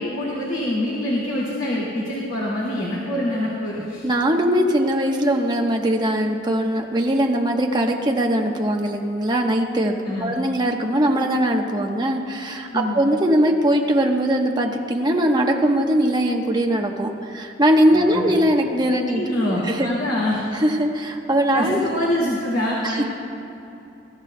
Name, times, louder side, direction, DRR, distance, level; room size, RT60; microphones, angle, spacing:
voice 1, 0.0-4.0 10.0-10.3 12.7-13.0 17.9-18.3 19.1-20.4 21.5-23.0, left 1 dB, 80° left, -5 dB, 2.1 m, -25 dB
voice 2, 4.0-9.9 10.2-19.2 19.6-19.9 20.5-21.8 22.8-23.0, right 1 dB, 20° right, 1 dB, 1.0 m, -20 dB
21.5 x 14.0 x 2.2 m, 2.8 s
head